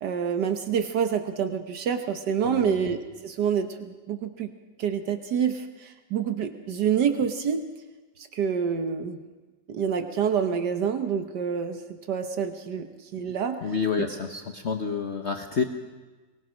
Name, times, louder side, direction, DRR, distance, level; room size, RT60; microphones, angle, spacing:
voice 1, 0.0-4.5 4.8-7.7 8.2-9.2 9.7-11.8 12.1-13.6 14.0-14.1, right 7 dB, 75° right, 8 dB, 1.6 m, -27 dB
voice 2, 2.4-2.8 13.6-15.6, left 6 dB, 45° left, 5 dB, 1.2 m, -29 dB
23.5 x 20.5 x 6.3 m, 1.3 s
omnidirectional pair, 1.9 m